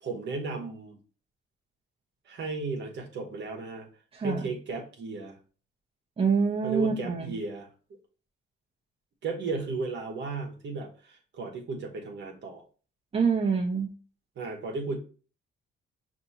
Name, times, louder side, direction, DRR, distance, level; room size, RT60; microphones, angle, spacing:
voice 1, 0.0-1.0 2.3-3.9 4.2-5.4 6.6-7.7 9.2-12.6 14.4-15.0, right 3 dB, 65° right, 3 dB, 1.1 m, -34 dB
voice 2, 4.1-4.4 6.2-7.3 13.1-13.9, right 5 dB, 30° right, 0 dB, 0.9 m, -26 dB
5.2 x 2.7 x 2.8 m, 0.37 s
cardioid pair, 90°, 20 cm